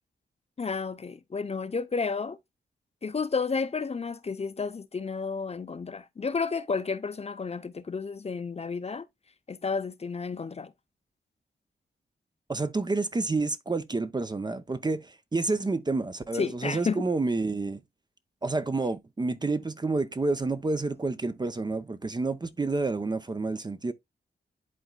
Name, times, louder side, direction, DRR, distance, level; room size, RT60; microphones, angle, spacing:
voice 1, 0.6-2.4 3.0-9.1 9.5-10.7 16.4-17.1, left 5 dB, 35° left, 0.6 m, -31 dB
voice 2, 12.5-17.8 18.4-23.9, right 3 dB, 25° right, 0.6 m, -29 dB
11.0 x 3.9 x 2.2 m
wide cardioid pair, 100°, 19 cm